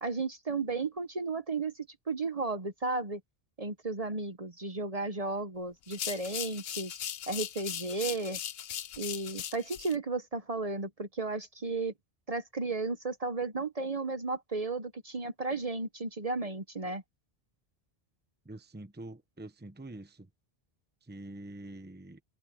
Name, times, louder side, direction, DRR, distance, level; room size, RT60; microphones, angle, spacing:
voice 1, 0.0-3.2 3.6-7.0 7.3-8.4 9.0-11.9 12.3-17.0, right 3 dB, 40° right, 1.0 m, -34 dB
sound 1, 5.8-10.0, left 10 dB, 75° left, 0.9 m, -39 dB
voice 2, 18.5-20.3 21.1-22.2, right 1 dB, 10° right, 0.9 m, -45 dB
omnidirectional pair, 1.0 m